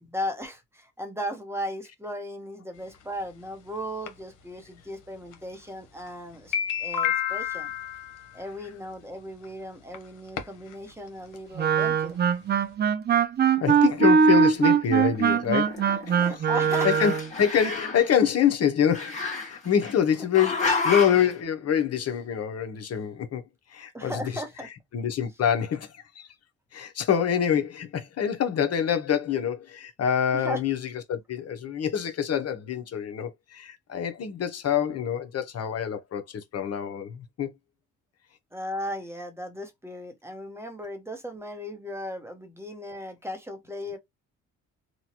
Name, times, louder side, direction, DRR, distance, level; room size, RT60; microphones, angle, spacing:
voice 1, 0.0-7.7 8.3-12.2 16.2-16.9 23.9-24.7 30.3-30.6 38.5-44.0, equal, 10° right, 0.9 m, -36 dB
sound 1, 2.9-3.0 4.1-4.2 5.3-5.4 6.0-6.1 6.3-8.3 9.4-9.5 9.9-10.0 10.4-10.7 11.1-11.2 11.3-11.4 11.8-11.9, left 9 dB, 85° left, 0.9 m, -29 dB
Wind instrument woodwind instrument, 11.6-17.3, right 6 dB, 35° right, 0.4 m, -21 dB
voice 2, 13.6-16.4 16.8-23.4 23.7-24.4 24.9-26.3 26.7-37.5, left 8 dB, 55° left, 0.8 m, -26 dB
Growling, 15.1-16.4 16.6-18.1 18.9-19.9 20.3-21.3, left 3 dB, 25° left, 1.6 m, -30 dB
3.0 x 2.2 x 2.9 m
cardioid pair, 90°, 30 cm